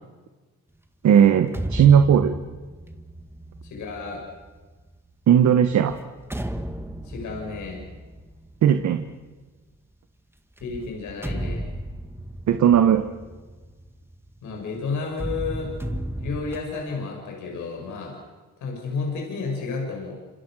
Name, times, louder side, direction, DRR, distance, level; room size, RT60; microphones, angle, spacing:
voice 1, 1.0-2.3 5.3-5.9 8.6-9.0 12.5-13.0, right 8 dB, 70° right, 8 dB, 1.6 m, -16 dB
sound 1, 1.2-5.0 5.7-9.3 10.6-14.6 15.1-16.6, right 1 dB, 10° right, 2.0 m, -35 dB
voice 2, 3.6-4.2 7.0-7.8 10.6-11.7 14.4-15.7 16.2-18.2 18.6-20.2, left 4 dB, 75° left, 1 dB, 6.7 m, -31 dB
27.5 x 27.0 x 6.5 m, 1.3 s
cardioid pair, 90°, 30 cm